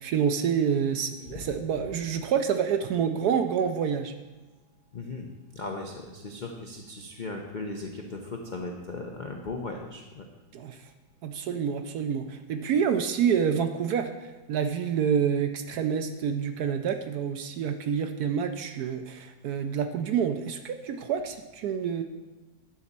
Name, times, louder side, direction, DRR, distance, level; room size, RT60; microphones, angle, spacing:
voice 1, 0.0-4.1 10.5-10.8 11.2-22.0, right 7 dB, 70° right, 8 dB, 1.0 m, -28 dB
voice 2, 4.9-10.3, left 3 dB, 65° left, 1 dB, 0.4 m, -37 dB
10.5 x 4.1 x 7.4 m, 1.1 s
omnidirectional pair, 2.0 m